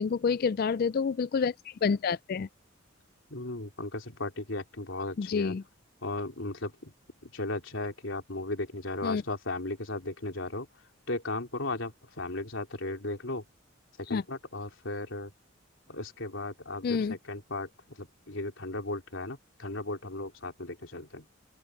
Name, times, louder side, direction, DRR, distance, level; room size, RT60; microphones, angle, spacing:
voice 1, 0.0-1.5 1.8-2.5 5.2-5.6 9.0-9.2 14.1-14.2 16.8-17.2, left 5 dB, 45° left, 0.3 m, -28 dB
voice 2, 3.3-5.5 6.0-6.9 7.2-10.7 11.1-13.4 14.0-15.3 15.9-21.3, left 2 dB, 70° left, 3.5 m, -36 dB
open air
head